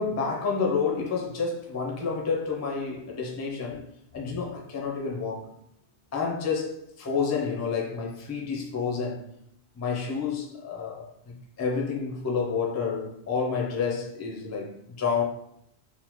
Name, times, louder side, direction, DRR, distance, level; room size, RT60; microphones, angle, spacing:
voice 1, 0.0-3.9 4.1-5.5 6.1-9.2 9.8-11.1 11.6-15.2, left 5 dB, 25° left, 0.3 m, -29 dB
3.6 x 2.1 x 2.9 m
omnidirectional pair, 1.1 m